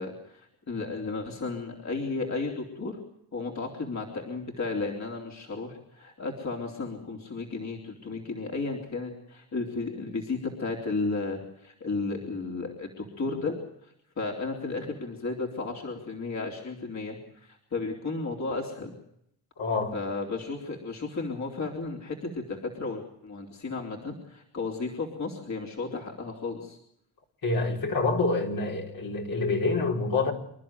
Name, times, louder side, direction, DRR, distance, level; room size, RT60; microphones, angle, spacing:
voice 1, 0.0-3.0 3.3-13.6 14.2-18.9 19.9-26.8, left 3 dB, 45° left, 0 dB, 3.9 m, -33 dB
voice 2, 19.6-20.0 27.4-30.3, left 3 dB, 60° left, -1 dB, 4.9 m, -27 dB
27.5 x 11.5 x 9.1 m, 0.74 s
supercardioid pair, 65°, 39 cm